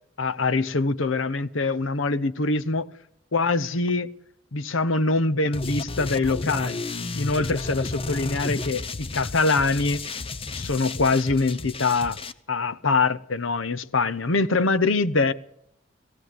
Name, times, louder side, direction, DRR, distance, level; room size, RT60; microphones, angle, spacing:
voice 1, 0.2-2.9 3.3-4.1 4.5-6.8 7.1-10.0 10.5-12.2 12.5-15.3, left 3 dB, 75° left, 0.9 m, -24 dB
sound 1, 5.5-12.3, left 3 dB, 30° left, 0.7 m, -32 dB
19.0 x 15.0 x 9.5 m
head